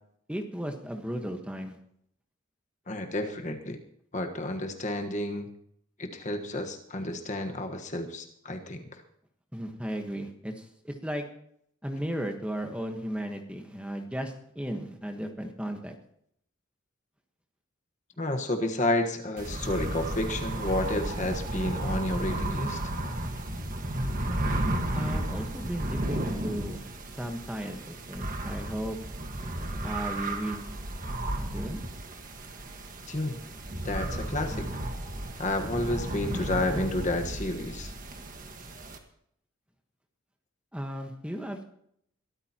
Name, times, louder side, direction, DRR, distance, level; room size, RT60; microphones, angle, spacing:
voice 1, 0.3-1.8 9.5-11.2 11.8-15.9 24.9-26.8 27.2-29.0 29.8-30.8 31.4-31.8 40.7-41.6, equal, 5° right, 3 dB, 1.2 m, -35 dB
voice 2, 2.9-3.8 4.1-5.5 6.0-9.0 18.2-22.8 33.1-33.4 33.8-34.7 35.4-37.9, left 1 dB, 35° left, 5 dB, 1.3 m, -31 dB
sound 1, 19.4-39.0, right 1 dB, 40° right, 1.6 m, -33 dB
22.5 x 13.0 x 3.0 m, 0.70 s
head